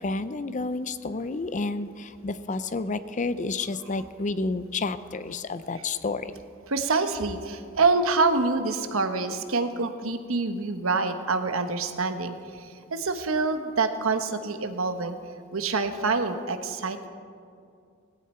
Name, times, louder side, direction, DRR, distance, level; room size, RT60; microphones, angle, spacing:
voice 1, 0.0-6.3, left 3 dB, 35° left, 13 dB, 0.6 m, -30 dB
voice 2, 6.7-15.1 15.5-17.1, right 3 dB, 85° right, 8 dB, 1.1 m, -26 dB
18.0 x 16.0 x 4.4 m, 2.3 s
head